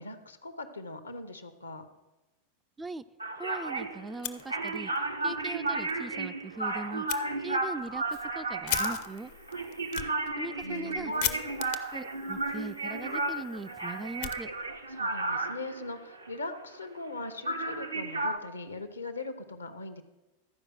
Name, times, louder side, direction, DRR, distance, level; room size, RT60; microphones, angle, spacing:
voice 1, 0.0-1.9 10.6-11.7 14.9-20.0, left 2 dB, 80° left, 10 dB, 0.8 m, -40 dB
sound 1, 3.2-17.2 17.5-18.4, right 2 dB, 80° right, 0.7 m, -33 dB
voice 2, 3.4-4.9 5.2-7.1 7.4-9.3 10.4-11.1 11.9-14.5, right 3 dB, 10° right, 12 dB, 0.3 m, -40 dB
Fire, 4.1-5.0 5.3-5.4 5.8-5.9 7.1-7.2 7.8-14.9, left 12 dB, 50° left, 0.5 m, -39 dB
12.5 x 5.0 x 6.2 m, 1.0 s
figure-of-eight pair, 90°, 0 cm